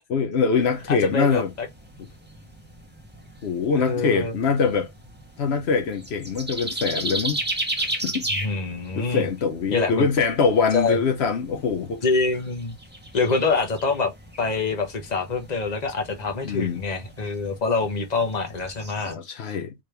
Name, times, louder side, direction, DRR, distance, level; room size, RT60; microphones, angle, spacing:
voice 1, 0.1-1.5 3.4-4.9 5.4-7.4 7.8-8.3 9.0-12.0 16.4-16.8 19.0-19.7, left 5 dB, 80° left, 1.0 m, -23 dB
sound 1, 0.6-19.1, right 1 dB, 10° right, 1.2 m, -36 dB
voice 2, 0.9-1.7 3.8-4.3 8.3-9.3 9.7-10.1 10.7-11.0 12.0-12.8 13.1-14.1 14.4-19.6, left 3 dB, 40° left, 1.1 m, -25 dB
5.0 x 3.2 x 3.3 m
omnidirectional pair, 1.1 m